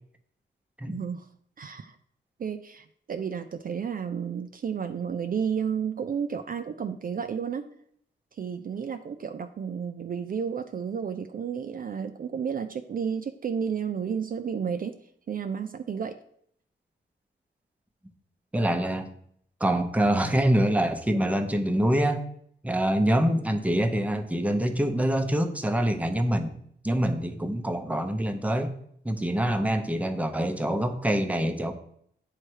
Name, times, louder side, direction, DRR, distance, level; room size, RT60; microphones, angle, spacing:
voice 1, 0.9-1.3 1.6-2.0 2.4-7.7 8.3-16.2, right 7 dB, 45° right, 7 dB, 0.4 m, -32 dB
voice 2, 18.5-19.1 19.6-22.2 22.6-26.6 26.8-28.7 29.0-31.7, right 1 dB, 5° right, 6 dB, 0.7 m, -25 dB
8.6 x 3.3 x 4.6 m, 0.67 s
cardioid pair, 85°, 20 cm